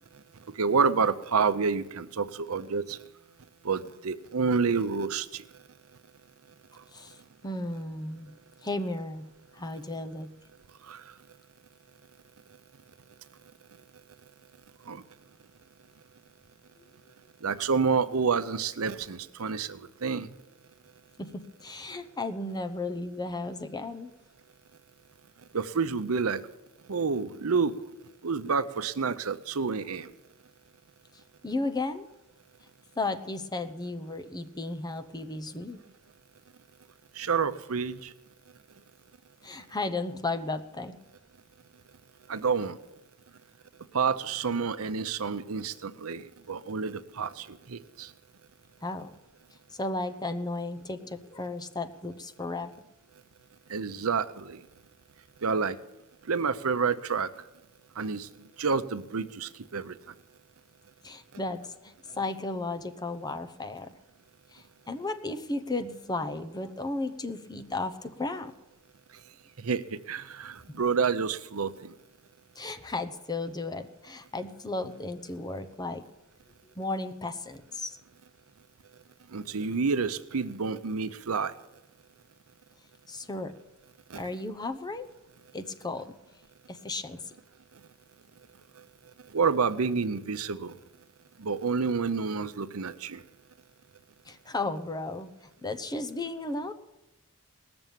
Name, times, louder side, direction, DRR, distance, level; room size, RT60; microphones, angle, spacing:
voice 1, 0.6-3.0 3.6-5.4 10.9-11.0 14.9-15.0 17.4-20.3 25.5-26.4 26.9-27.7 28.2-30.1 37.2-38.1 42.3-42.8 43.9-48.1 53.7-54.6 55.4-55.8 56.3-57.3 58.0-58.3 58.6-59.9 69.6-71.9 79.3-81.5 84.1-84.2 89.3-90.7 91.4-93.2, right 5 dB, 80° right, 13 dB, 0.7 m, -29 dB
voice 2, 7.4-8.3 8.6-9.3 9.5-10.3 21.2-24.1 31.4-32.1 33.0-35.8 39.4-41.0 48.8-49.1 49.7-52.7 61.0-63.9 64.5-68.5 70.7-70.8 72.6-76.0 76.8-78.0 83.1-83.5 84.1-85.1 85.5-86.1 86.7-87.2 94.3-95.3 95.6-96.7, left 2 dB, 20° left, 9 dB, 0.8 m, -34 dB
18.5 x 7.0 x 9.1 m, 0.94 s
head